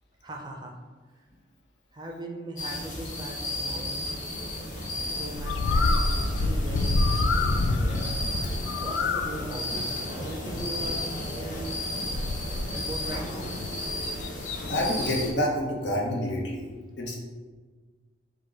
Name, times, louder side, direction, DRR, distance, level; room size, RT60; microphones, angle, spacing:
voice 1, 0.2-0.7 1.9-4.1 5.1-8.3 8.8-11.8 12.1-13.6, right 1 dB, 25° right, 1 dB, 0.5 m, -39 dB
sound 1, 2.6-15.3, left 1 dB, 45° left, 0.8 m, -33 dB
Bird, 5.3-14.9, left 2 dB, 85° left, 0.4 m, -29 dB
voice 2, 14.6-16.7 17.0-17.2, equal, 70° left, -2 dB, 0.9 m, -28 dB
4.5 x 2.2 x 4.6 m, 1.4 s
head